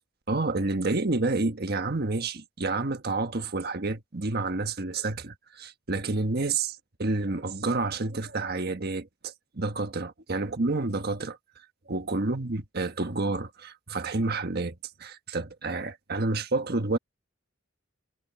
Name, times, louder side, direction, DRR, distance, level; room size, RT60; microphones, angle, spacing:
voice 1, 0.3-11.4 11.9-14.7 15.0-17.0, right 3 dB, 50° right, 1.4 m, -29 dB
head